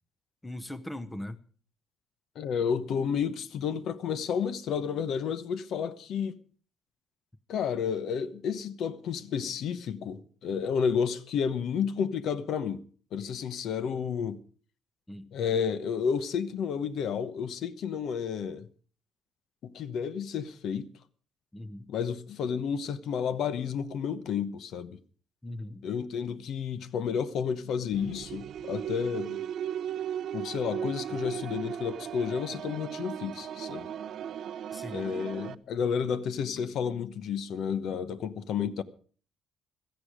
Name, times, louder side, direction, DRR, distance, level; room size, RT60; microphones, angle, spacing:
voice 1, 0.4-1.4 15.1-15.3 21.5-21.9 25.4-25.9 34.7-35.1, left 1 dB, 10° left, 0.8 m, -40 dB
voice 2, 2.3-6.4 7.5-12.8 13.1-14.4 15.3-18.7 19.6-20.9 21.9-25.0 25.8-29.4 30.3-33.9 34.9-38.8, left 7 dB, 60° left, 1.0 m, -31 dB
sound 1, 27.9-35.5, right 9 dB, 55° right, 0.6 m, -37 dB
16.5 x 14.0 x 4.9 m
cardioid pair, 160°, 0 cm